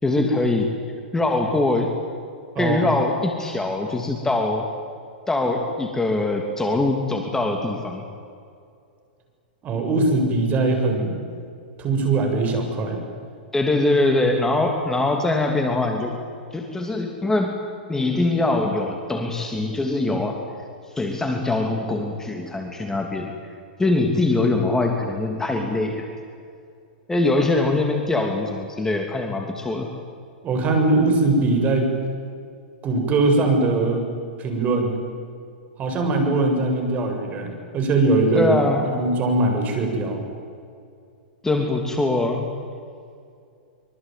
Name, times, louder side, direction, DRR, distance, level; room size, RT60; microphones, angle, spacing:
voice 1, 0.0-0.7 1.1-1.9 2.6-4.7 5.3-8.0 13.5-16.2 16.5-17.6 17.9-20.4 20.9-23.3 23.8-26.1 27.1-30.0 38.3-38.9 41.4-42.5, left 2 dB, 10° left, 3 dB, 3.0 m, -22 dB
voice 2, 9.6-11.2 11.8-13.0 30.4-31.9 32.8-34.1 34.4-35.0 35.8-38.6 38.9-40.2, right 2 dB, 30° right, 4 dB, 7.5 m, -21 dB
25.0 x 24.0 x 9.4 m, 2.4 s
hypercardioid pair, 115°, 5 cm